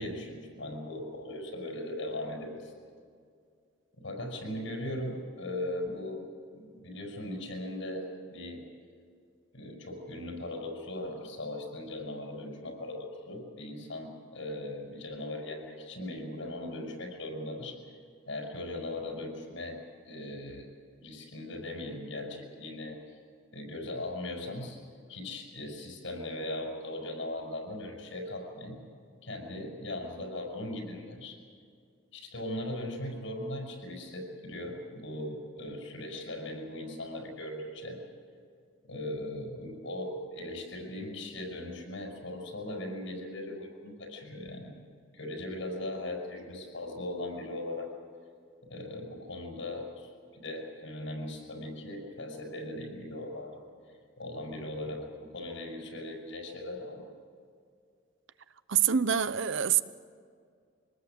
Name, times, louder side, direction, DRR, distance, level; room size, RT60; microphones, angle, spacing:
voice 1, 0.0-2.7 4.0-6.2 6.5-8.6 9.5-17.8 18.3-20.7 21.0-23.2 23.5-24.8 25.1-28.8 29.2-31.4 32.1-38.0 38.9-44.7 45.1-47.9 48.7-53.6 54.2-57.0, left 1 dB, 80° left, 1 dB, 5.8 m, -39 dB
voice 2, 58.7-59.8, right 8 dB, 75° right, 15 dB, 0.7 m, -25 dB
25.0 x 19.5 x 7.7 m, 2.2 s
head